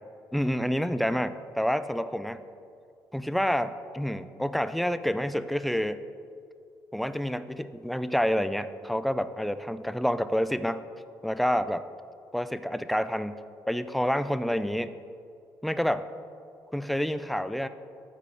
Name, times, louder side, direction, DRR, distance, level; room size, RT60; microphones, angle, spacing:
voice 1, 0.3-2.4 3.1-6.0 6.9-10.9 11.2-11.9 12.3-13.4 13.7-14.9 15.6-16.1 16.7-17.7, equal, ahead, 12 dB, 0.3 m, -28 dB
12.5 x 9.1 x 3.6 m, 2.4 s
cardioid pair, 135°, 7 cm